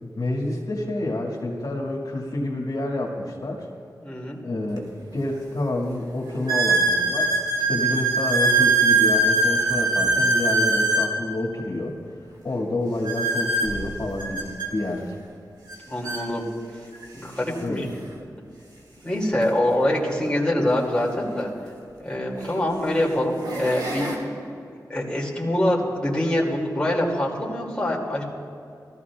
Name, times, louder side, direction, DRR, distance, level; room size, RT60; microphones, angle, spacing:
voice 1, 0.0-3.7 4.4-7.3 7.7-11.9 12.4-15.2 17.6-17.8, left 2 dB, 60° left, -3 dB, 2.1 m, -28 dB
voice 2, 4.0-4.4 15.9-16.5 17.1-17.9 19.0-21.5 22.0-24.2 24.9-28.2, left 1 dB, 10° left, -4 dB, 2.4 m, -24 dB
sound 1, 4.8-4.9 5.5-5.6 6.5-11.1 13.0-14.7 15.7-15.8 16.0-16.2 17.0-17.1 19.3-19.4 21.5-21.6 22.3-22.7 23.2-24.1, right 3 dB, 65° right, 2.1 m, -22 dB
18.5 x 14.0 x 2.4 m, 2.5 s
cardioid pair, 60°, 8 cm